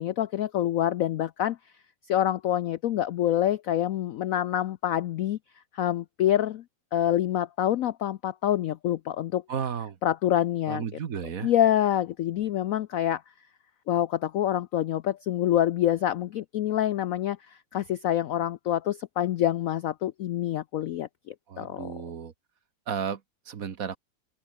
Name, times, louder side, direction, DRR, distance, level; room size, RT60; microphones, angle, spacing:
voice 1, 0.0-1.6 2.1-5.4 5.7-6.6 6.9-9.4 10.0-10.8 11.4-13.2 13.9-22.0, left 11 dB, 70° left, 0.8 m, -26 dB
voice 2, 9.5-10.0 10.7-11.5 21.5-22.3 22.9-23.2 23.5-24.0, right 7 dB, 55° right, 1.5 m, -33 dB
open air
omnidirectional pair, 2.0 m